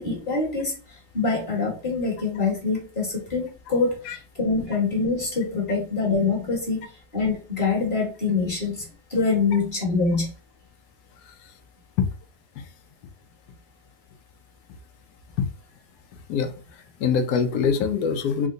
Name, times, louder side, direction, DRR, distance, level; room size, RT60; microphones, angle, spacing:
voice 1, 0.0-10.3, left 4 dB, 30° left, 1.4 m, -25 dB
voice 2, 17.0-18.5, left 6 dB, 70° left, 1.0 m, -23 dB
3.7 x 2.2 x 3.7 m
omnidirectional pair, 1.8 m